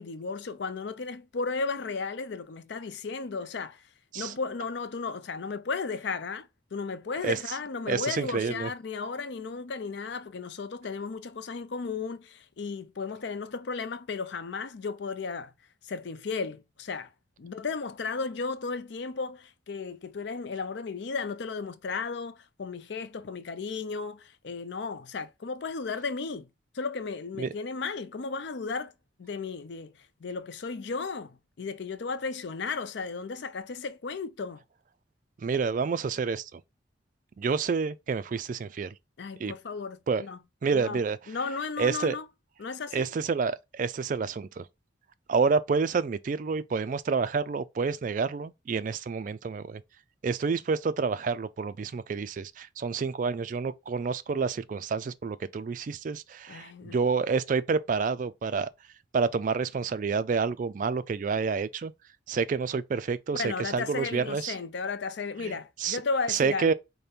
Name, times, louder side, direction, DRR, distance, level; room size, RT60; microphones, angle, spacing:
voice 1, 0.0-3.8 4.2-15.5 15.8-17.1 17.4-26.5 26.7-28.9 29.2-29.9 30.2-34.6 39.2-40.4 40.7-41.0 41.3-42.3 42.6-43.1 56.5-57.0 63.3-66.7, left 4 dB, 65° left, 0.5 m, -34 dB
voice 2, 7.9-8.7 27.4-27.5 35.4-36.6 37.4-38.9 39.4-39.5 40.1-40.2 40.6-41.2 41.8-42.2 42.9-44.7 45.3-49.8 50.2-58.7 59.1-61.9 62.3-64.5 65.4-65.5 65.8-66.0 66.3-66.7, right 5 dB, 45° right, 0.3 m, -28 dB
5.1 x 2.1 x 4.3 m
head